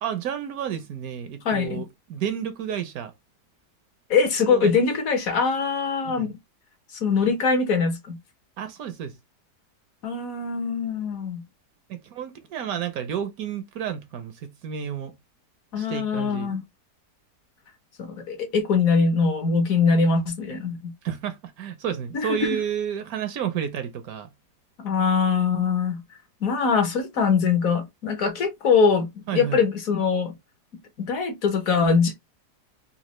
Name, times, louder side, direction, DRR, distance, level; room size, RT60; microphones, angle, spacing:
voice 1, 0.0-3.1 4.5-4.7 6.0-6.3 8.6-9.1 11.9-15.1 15.8-16.6 21.0-24.3 29.3-29.7, right 8 dB, 70° right, 0.9 m, -31 dB
voice 2, 1.4-1.8 4.1-6.4 7.0-8.2 10.0-11.4 15.7-16.6 18.0-20.9 22.1-22.4 24.8-26.0 26.4-30.3 31.0-32.2, left 5 dB, 60° left, 1.2 m, -22 dB
4.1 x 2.3 x 2.9 m
omnidirectional pair, 1.8 m